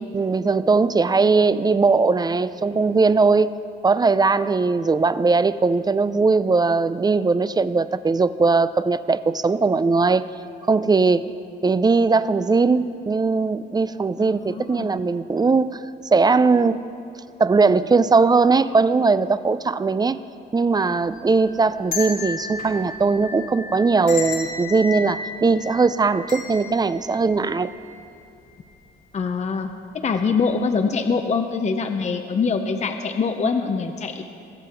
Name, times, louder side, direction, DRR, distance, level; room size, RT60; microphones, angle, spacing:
voice 1, 0.1-3.6 3.8-10.3 10.7-11.3 11.6-15.8 16.1-16.8 17.4-20.2 20.5-27.7, right 4 dB, 20° right, 15 dB, 0.4 m, -19 dB
voice 2, 14.2-14.9 29.1-34.2, left 5 dB, 35° left, 6 dB, 0.7 m, -24 dB
sound 1, 21.0-28.2 28.5-28.6 29.5-29.8 30.2-30.4, left 5 dB, 75° left, 2.4 m, -34 dB
22.0 x 7.6 x 4.5 m, 2.6 s
cardioid pair, 90°, 20 cm